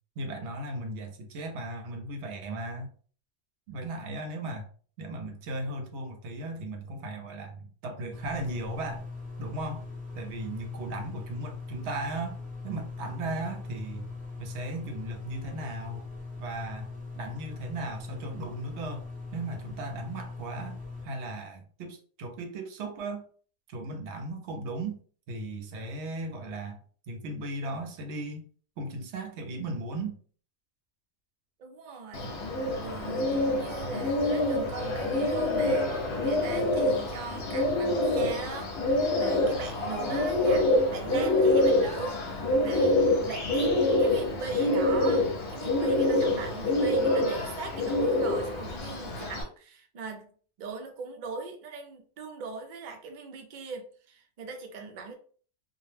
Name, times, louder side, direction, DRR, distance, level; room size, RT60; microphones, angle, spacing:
voice 1, 0.2-2.9 3.7-4.7 5.0-9.1 9.4-9.9 10.1-12.3 12.6-14.1 14.4-16.0 16.4-16.9 17.2-19.1 19.3-23.3 23.7-25.0 25.3-26.8 27.1-28.5 28.8-30.2, right 2 dB, 80° right, 5 dB, 0.9 m, -36 dB
sound 1, 8.1-21.0, left 3 dB, 10° right, 0.4 m, -40 dB
voice 2, 31.6-32.3 32.7-43.0 43.2-50.3 50.6-55.2, right 4 dB, 55° right, 4 dB, 0.6 m, -40 dB
Bird, 32.1-49.4, left 2 dB, 65° left, 0.8 m, -26 dB
2.2 x 2.0 x 3.1 m, 0.43 s
omnidirectional pair, 1.2 m